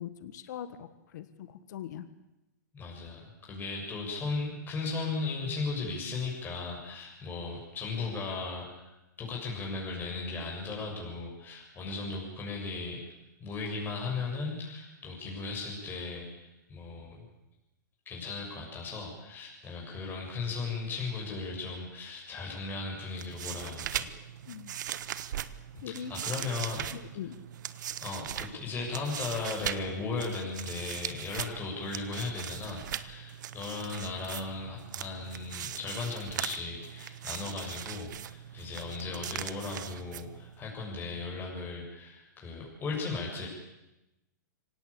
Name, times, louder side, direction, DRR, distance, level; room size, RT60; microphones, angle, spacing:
voice 1, 0.0-2.1 24.5-24.8 25.8-26.1 26.9-27.4, left 10 dB, 65° left, 12 dB, 1.7 m, -41 dB
voice 2, 2.7-8.9 9.2-13.0 13.4-17.2 18.1-24.1 26.1-26.9 28.0-43.5, left 4 dB, 20° left, -2 dB, 7.2 m, -36 dB
sound 1, 23.0-40.6, right 10 dB, 70° right, 1.3 m, -40 dB
24.5 x 18.0 x 8.7 m, 0.96 s
hypercardioid pair, 130°, 10 cm